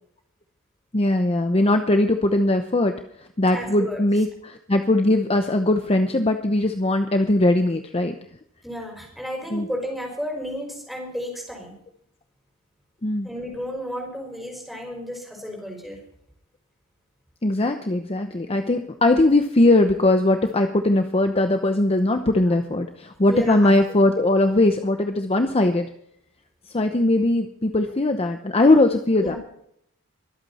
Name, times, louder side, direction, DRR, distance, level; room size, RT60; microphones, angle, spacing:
voice 1, 0.9-3.0 3.4-8.2 9.5-9.7 13.0-13.3 17.4-25.9 26.7-29.4, left 2 dB, 25° left, 6 dB, 0.8 m, -20 dB
voice 2, 3.5-4.0 8.6-11.7 13.2-16.0 23.3-23.7 24.2-24.3 29.2-29.4, equal, ahead, 0 dB, 5.6 m, -32 dB
24.0 x 8.7 x 4.3 m, 0.71 s
head